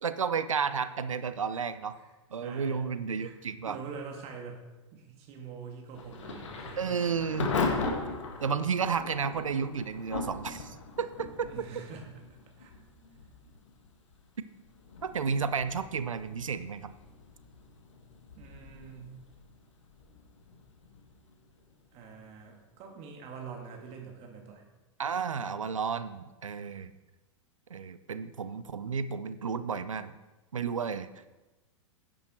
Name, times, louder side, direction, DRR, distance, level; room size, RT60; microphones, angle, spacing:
voice 1, 0.0-2.0 2.3-3.8 6.8-7.5 8.4-11.5 15.1-16.9 25.0-26.9 27.7-30.1 30.5-31.1, right 6 dB, 80° right, 13 dB, 0.6 m, -32 dB
voice 2, 2.4-2.9 3.2-3.3 3.7-4.6 4.9-6.8 7.5-7.9 11.4-12.0 12.6-12.7 18.4-19.1 21.9-24.6, right 5 dB, 40° right, 2 dB, 2.3 m, -45 dB
Thunder / Rain, 5.9-22.6, left 4 dB, 70° left, 1.8 m, -39 dB
10.5 x 8.7 x 4.4 m, 1.1 s
figure-of-eight pair, 100°, 16 cm